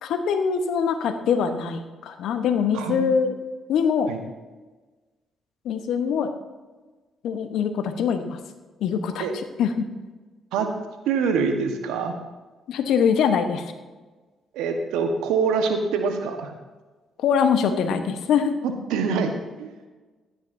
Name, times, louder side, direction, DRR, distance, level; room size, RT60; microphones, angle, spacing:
voice 1, 0.0-3.4 3.7-4.1 5.6-6.3 7.2-8.4 8.8-9.9 10.6-10.7 12.7-13.7 17.2-18.6, left 6 dB, 75° left, 8 dB, 1.0 m, -23 dB
voice 2, 2.7-3.1 4.1-4.2 9.2-9.3 10.5-10.7 11.1-12.1 14.5-16.5 18.6-19.3 19.6-19.7, right 5 dB, 80° right, 5 dB, 1.2 m, -25 dB
15.5 x 10.5 x 2.7 m, 1.3 s
hypercardioid pair, 50°, 0 cm